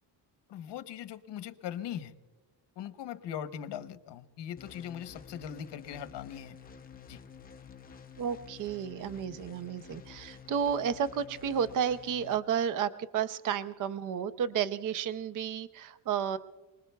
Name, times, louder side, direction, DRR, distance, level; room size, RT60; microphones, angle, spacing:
voice 1, 0.5-2.1 2.8-6.6 7.1-7.2, left 9 dB, 75° left, 11 dB, 0.9 m, -40 dB
sound 1, 4.6-12.4, left 6 dB, 20° left, 0.6 m, -51 dB
voice 2, 8.2-16.4, right 8 dB, 50° right, 13 dB, 0.6 m, -32 dB
28.5 x 20.5 x 2.3 m, 1.2 s
cardioid pair, 155°, 42 cm